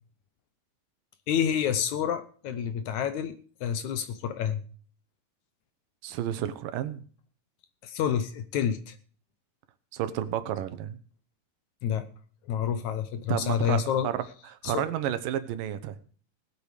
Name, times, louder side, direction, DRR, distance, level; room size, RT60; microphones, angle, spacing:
voice 1, 1.3-4.6 7.8-9.0 11.8-12.1 12.4-14.1 14.6-14.9, left 8 dB, 70° left, 11 dB, 2.1 m, -28 dB
voice 2, 6.0-7.0 9.9-11.0 13.3-14.2 14.5-16.0, right 11 dB, 80° right, 11 dB, 2.6 m, -31 dB
18.5 x 8.3 x 5.0 m, 0.42 s
omnidirectional pair, 3.9 m